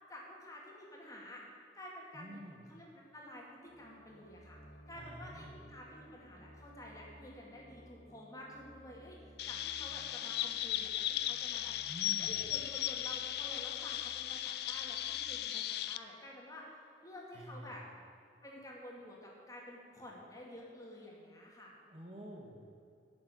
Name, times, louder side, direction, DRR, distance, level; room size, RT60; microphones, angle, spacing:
voice 1, 0.1-1.4 1.8-4.6 4.9-9.2 9.5-11.7 12.2-16.7 17.0-17.8 18.4-21.7, left 1 dB, 20° left, -3 dB, 2.2 m, -51 dB
voice 2, 2.1-2.6 4.9-5.6 11.9-12.4 17.3-17.8 21.9-22.6, right 1 dB, 35° right, 0 dB, 1.5 m, -49 dB
sound 1, 3.7-15.3, right 1 dB, 45° left, 1.9 m, -59 dB
Chirp tweet, 9.4-16.0, left 12 dB, 60° left, 0.4 m, -37 dB
11.5 x 6.5 x 9.0 m, 2.5 s
head